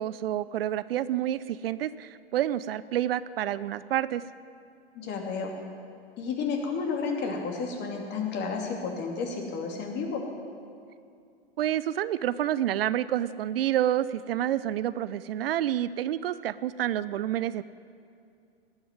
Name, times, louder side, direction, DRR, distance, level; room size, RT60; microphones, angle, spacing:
voice 1, 0.0-4.2 11.6-17.6, right 12 dB, 65° right, 16 dB, 0.5 m, -28 dB
voice 2, 4.9-5.5 6.2-10.2, left 5 dB, 35° left, 2 dB, 2.6 m, -31 dB
18.5 x 6.2 x 9.6 m, 2.4 s
hypercardioid pair, 105°, 31 cm